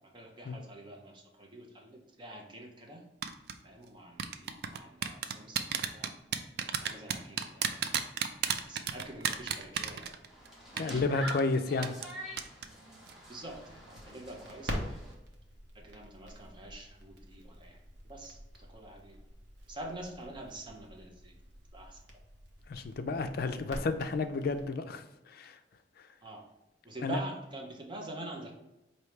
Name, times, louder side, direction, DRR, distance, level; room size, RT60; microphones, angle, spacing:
voice 1, 0.0-3.1 3.6-6.1 6.8-8.0 8.6-10.2 10.7-12.0 13.3-15.0 15.7-17.8 18.0-19.2 19.7-21.3 21.7-22.0 26.2-26.5 26.8-28.5, right 1 dB, 25° right, 0 dB, 0.7 m, -46 dB
sound 1, 3.2-3.5 4.2-10.5 10.8-10.9 11.3-11.4 11.8-12.1 12.4-12.7 13.0-13.1, right 8 dB, 60° right, 0.3 m, -32 dB
sound 2, 10.3-15.1, equal, ahead, 1.0 m, -46 dB
voice 2, 10.8-11.9 22.7-25.6 27.0-27.2, left 3 dB, 55° left, 8 dB, 0.4 m, -31 dB
Crackle, 13.4-24.6, equal, 85° right, 0.7 m, -46 dB
4.6 x 2.7 x 3.2 m, 0.92 s
head